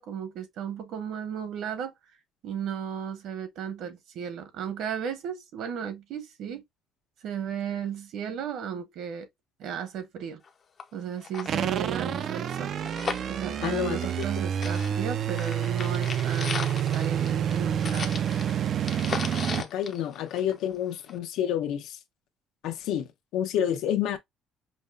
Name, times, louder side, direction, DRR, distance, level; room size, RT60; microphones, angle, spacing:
voice 1, 0.0-1.9 2.4-6.6 7.2-9.3 9.6-10.4 10.9-12.7 13.3-18.1, right 8 dB, 65° right, 1.1 m, -34 dB
sound 1, 10.4-10.5 10.8-10.9 11.2-14.4 14.6-20.7 21.1-21.2, left 6 dB, 35° left, 0.6 m, -37 dB
sound 2, 11.5-19.6, right 9 dB, 45° right, 0.3 m, -28 dB
voice 2, 13.6-14.3 19.6-22.0 22.6-23.1 23.3-24.2, left 10 dB, 75° left, 0.8 m, -29 dB
5.2 x 2.2 x 2.3 m
cardioid pair, 155°, 0 cm